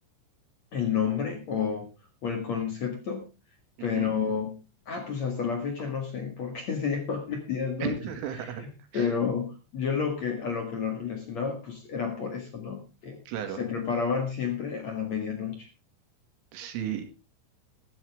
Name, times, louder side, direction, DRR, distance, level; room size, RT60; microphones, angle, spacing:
voice 1, 0.7-1.9 2.2-3.2 3.8-4.6 4.9-8.0 8.4-13.2 13.6-15.7, left 6 dB, 50° left, 4 dB, 2.3 m, -30 dB
voice 2, 3.8-4.1 7.8-8.6 8.9-9.1 13.3-13.6 16.5-17.0, right 10 dB, 80° right, 6 dB, 4.7 m, -34 dB
14.5 x 13.0 x 3.5 m, 0.30 s
omnidirectional pair, 5.6 m